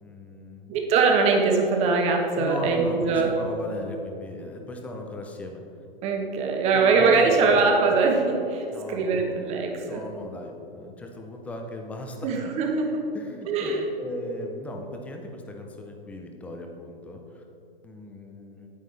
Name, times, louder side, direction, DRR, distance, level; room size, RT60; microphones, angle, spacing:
voice 1, 0.0-0.7 2.4-5.6 6.7-7.6 8.7-9.6 9.8-12.3 13.1-17.4 17.8-18.7, left 1 dB, 5° left, 2 dB, 0.4 m, -37 dB
voice 2, 0.7-3.3 6.0-10.0 12.2-12.9 13.5-13.8, right 4 dB, 20° right, 2 dB, 1.1 m, -22 dB
9.3 x 8.9 x 3.3 m, 2.7 s
figure-of-eight pair, 125°, 29 cm